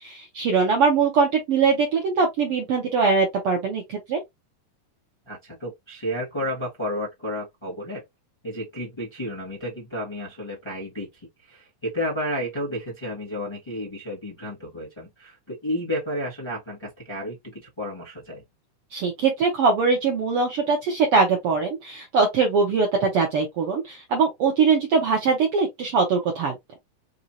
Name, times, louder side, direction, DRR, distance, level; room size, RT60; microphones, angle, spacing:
voice 1, 0.0-4.2 18.9-26.5, right 5 dB, 70° right, 1.4 m, -22 dB
voice 2, 5.3-8.0 8.4-18.4, equal, 15° left, 0.9 m, -32 dB
4.9 x 2.7 x 2.8 m
omnidirectional pair, 3.6 m